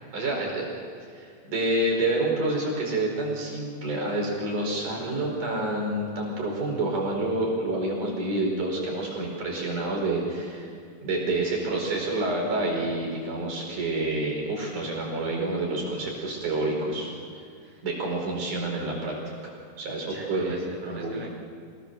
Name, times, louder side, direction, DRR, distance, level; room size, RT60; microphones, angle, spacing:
voice 1, 0.1-0.7 1.2-10.7 11.0-17.1 17.8-19.1 19.4-19.5 19.8-20.6 20.9-21.2, right 2 dB, 55° right, -1 dB, 6.0 m, -28 dB
voice 2, 9.1-9.5 17.6-17.9 20.1-21.3, right 1 dB, 5° right, -4 dB, 4.4 m, -42 dB
26.0 x 19.5 x 6.8 m, 2.3 s
omnidirectional pair, 4.5 m